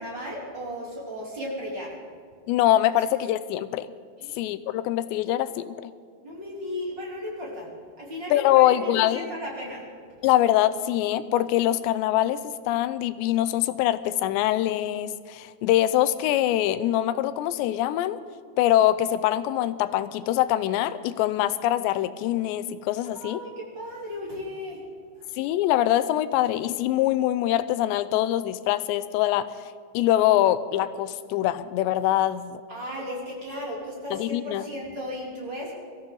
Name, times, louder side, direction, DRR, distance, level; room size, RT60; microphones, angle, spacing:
voice 1, 0.0-1.9 4.2-4.4 6.2-7.7 8.0-9.8 23.1-24.8 25.2-25.3 32.7-35.7, left 1 dB, 25° right, -4 dB, 3.7 m, -35 dB
voice 2, 2.5-3.9 4.4-5.9 8.3-9.3 10.2-12.4 12.7-18.2 18.6-23.4 25.4-29.5 29.9-32.6 34.1-34.7, left 13 dB, 90° left, 13 dB, 2.9 m, -23 dB
24.5 x 14.5 x 4.0 m, 2.1 s
omnidirectional pair, 5.0 m